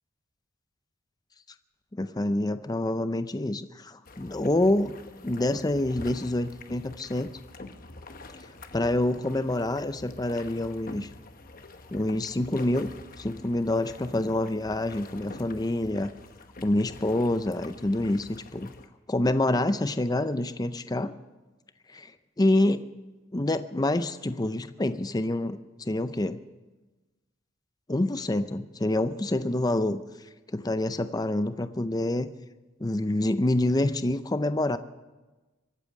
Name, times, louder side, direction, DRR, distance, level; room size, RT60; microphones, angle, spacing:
voice 1, 1.9-5.0 5.2-7.3 8.7-11.1 11.9-12.9 13.2-16.1 16.6-18.7 19.1-21.1 21.9-22.1 22.4-22.9 23.3-26.4 27.9-30.0 30.5-32.3 32.8-34.8, left 1 dB, 20° left, 11 dB, 0.5 m, -27 dB
sound 1, 4.1-18.9, left 2 dB, 45° left, 1.0 m, -47 dB
24.0 x 8.6 x 6.4 m, 1.2 s
head